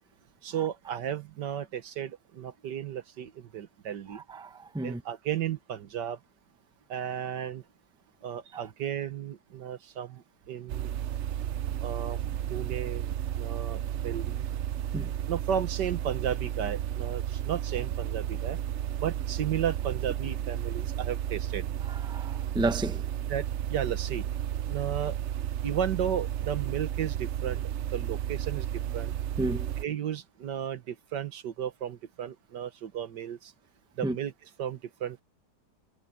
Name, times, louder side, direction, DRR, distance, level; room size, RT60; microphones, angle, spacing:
voice 1, 0.4-4.2 4.8-6.2 6.9-7.6 8.2-10.9 11.8-12.2 12.5-14.5 15.3-18.6 19.0-21.6 23.3-24.2 24.7-25.2 25.6-27.6 27.9-28.7 28.9-29.1 29.8-33.5 34.0-34.3 34.6-35.2, right 9 dB, 90° right, 1.8 m, -34 dB
voice 2, 4.1-5.0 8.5-8.6 14.9-15.1 21.9-23.0 29.4-29.7 34.0-34.1, right 2 dB, 5° right, 0.7 m, -32 dB
sound 1, 10.7-29.8, right 11 dB, 70° right, 0.6 m, -33 dB
omnidirectional pair, 1.8 m